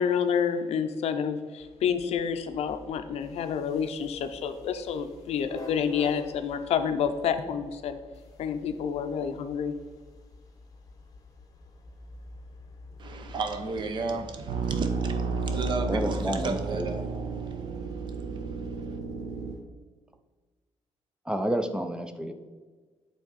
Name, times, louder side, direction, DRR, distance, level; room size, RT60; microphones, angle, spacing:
voice 1, 0.0-8.0 8.4-9.8, left 7 dB, 70° left, 0.5 m, -29 dB
sound 1, 1.6-19.6, left 3 dB, 35° left, 0.8 m, -48 dB
voice 2, 13.0-17.0 17.4-17.7 18.4-18.9, right 4 dB, 45° right, 0.6 m, -34 dB
sound 2, 14.5-19.5, right 4 dB, 85° right, 0.7 m, -32 dB
voice 3, 15.9-16.9 21.2-22.3, right 1 dB, 5° right, 0.3 m, -29 dB
8.6 x 3.5 x 4.0 m
cardioid pair, 165°, 11 cm